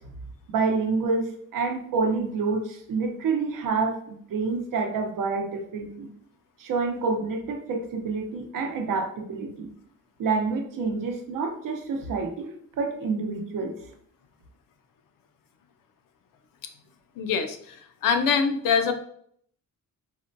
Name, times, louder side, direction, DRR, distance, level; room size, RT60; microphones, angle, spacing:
voice 1, 0.5-6.1 6.6-9.7 10.2-12.5 12.8-13.7, right 4 dB, 75° right, 4 dB, 0.7 m, -28 dB
voice 2, 17.2-17.7 18.0-18.9, left 6 dB, 85° left, 7 dB, 0.5 m, -23 dB
4.2 x 2.2 x 2.5 m, 0.64 s
wide cardioid pair, 165°, 32 cm